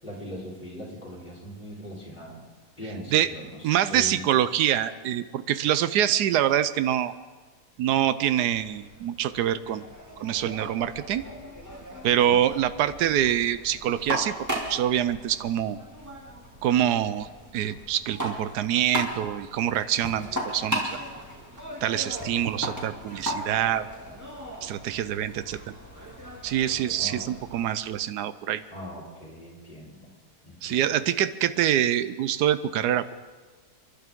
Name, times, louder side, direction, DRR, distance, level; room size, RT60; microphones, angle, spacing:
voice 1, 0.0-2.4 2.8-4.3 12.3-12.5 27.0-27.3 28.7-30.1 30.4-30.9, equal, 25° left, -5 dB, 3.9 m, -40 dB
voice 2, 3.6-7.1 7.8-9.9 10.2-11.2 12.0-14.3 14.7-15.8 16.6-21.0 21.8-23.9 24.6-25.7 26.4-28.6 30.6-33.2, right 11 dB, 85° right, 14 dB, 1.2 m, -25 dB
sound 1, 8.5-27.7, equal, 10° right, 2.3 m, -37 dB
29.0 x 11.5 x 3.7 m, 1.4 s
omnidirectional pair, 1.7 m